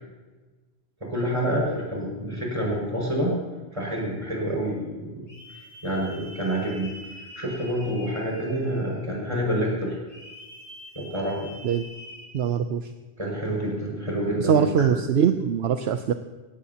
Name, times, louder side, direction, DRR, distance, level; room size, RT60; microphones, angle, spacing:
voice 1, 1.1-3.4 3.7-5.3 5.5-6.9 7.2-10.0 11.0-11.5 13.2-14.6, equal, 30° right, -4 dB, 5.9 m, -28 dB
sound 1, 5.3-9.1 10.1-12.3, left 1 dB, 55° left, 5.8 m, -45 dB
voice 2, 12.3-12.9 14.4-16.1, right 8 dB, 70° right, 8 dB, 0.9 m, -22 dB
19.0 x 17.0 x 2.9 m, 1.3 s
omnidirectional pair, 1.1 m